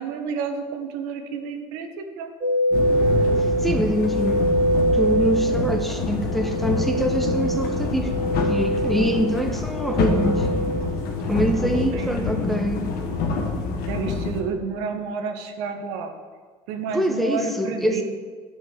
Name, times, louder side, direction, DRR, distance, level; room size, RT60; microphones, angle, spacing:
voice 1, 0.0-2.3 11.2-12.3 13.9-16.1 16.7-18.0, right 5 dB, 80° right, 5 dB, 1.2 m, -30 dB
sound 1, 2.4-10.9, right 1 dB, 40° right, 2.4 m, -24 dB
sound 2, 2.7-14.4, left 4 dB, 70° left, 1.7 m, -26 dB
voice 2, 3.4-4.5 4.9-8.1 8.4-10.5 11.3-12.9 16.9-18.0, equal, ahead, 4 dB, 1.3 m, -25 dB
10.0 x 5.5 x 8.0 m, 1.5 s
supercardioid pair, 80°, 16 cm